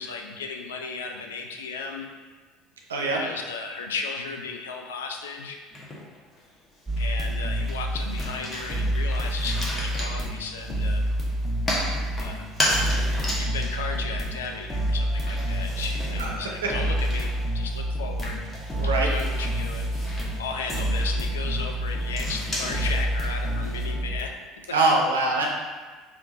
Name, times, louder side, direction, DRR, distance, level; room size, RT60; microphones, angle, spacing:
voice 1, 0.0-2.1 3.0-5.6 7.0-11.0 12.2-12.4 13.4-18.5 18.8-19.9 20.4-24.3 24.7-24.8, left 4 dB, 70° left, 3 dB, 0.4 m, -35 dB
sound 1, 5.7-6.4 6.8-23.9, left 1 dB, 25° left, 0.9 m, -35 dB
sound 2, 6.9-24.2, right 1 dB, 5° left, 1.0 m, -28 dB
voice 2, 18.8-19.1 24.7-25.4, right 2 dB, 75° right, -1 dB, 0.4 m, -23 dB
3.4 x 2.4 x 3.8 m, 1.4 s
figure-of-eight pair, 65°, 0 cm